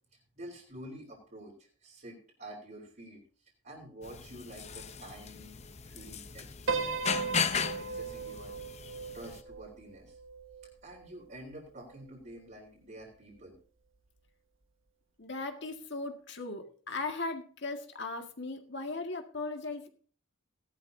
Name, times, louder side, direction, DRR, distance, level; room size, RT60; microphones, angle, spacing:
voice 1, 0.1-7.4 7.7-8.5 9.1-10.2 10.8-13.6, right 1 dB, 45° right, -4 dB, 3.7 m, -49 dB
sound 1, 4.0-9.4, left 6 dB, 35° left, 0.7 m, -36 dB
Piano, 6.7-11.1, right 4 dB, 75° right, 1.5 m, -37 dB
voice 2, 15.2-19.9, left 3 dB, 60° left, 4 dB, 1.9 m, -38 dB
18.0 x 12.0 x 2.7 m, 0.42 s
head